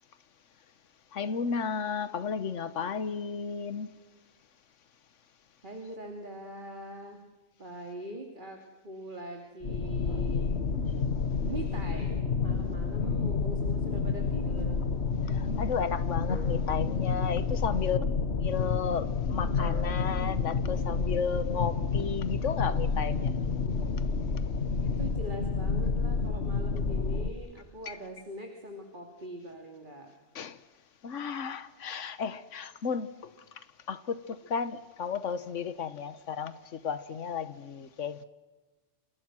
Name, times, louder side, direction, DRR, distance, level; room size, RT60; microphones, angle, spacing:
voice 1, 1.1-3.9 15.3-18.0 18.4-23.4 27.9-28.0 30.3-30.6 31.0-33.3 33.9-38.2, left 6 dB, 85° left, 1.5 m, -33 dB
voice 2, 5.6-7.2 7.6-8.6 8.8-10.5 11.5-14.8 24.8-30.1, right 1 dB, 40° right, 2.9 m, -42 dB
sound 1, 9.6-27.3, left 4 dB, 60° left, 1.6 m, -29 dB
sound 2, 16.3-17.3 19.6-20.4, equal, 35° left, 4.4 m, -46 dB
29.5 x 28.0 x 6.2 m
omnidirectional pair, 1.2 m